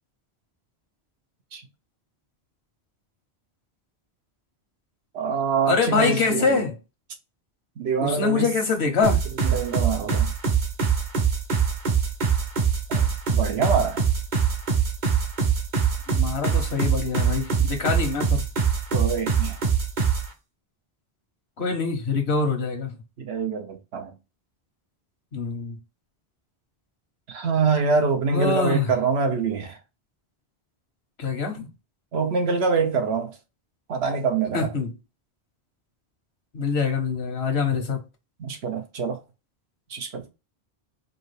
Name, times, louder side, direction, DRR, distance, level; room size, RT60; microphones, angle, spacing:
voice 1, 5.1-6.6 7.8-8.5 9.4-10.3 12.9-14.0 18.9-19.6 23.2-24.1 27.3-29.8 32.1-33.3 33.9-34.7 38.4-39.2 39.9-40.3, right 5 dB, 90° right, 1.1 m, -25 dB
voice 2, 5.7-6.8 8.0-9.2 16.1-18.4 21.6-23.0 25.3-25.7 28.3-28.9 31.2-31.7 34.5-34.9 36.5-38.0, left 5 dB, 85° left, 1.4 m, -24 dB
sound 1, 9.0-20.3, right 6 dB, 50° right, 0.9 m, -23 dB
5.2 x 2.4 x 3.2 m
omnidirectional pair, 1.0 m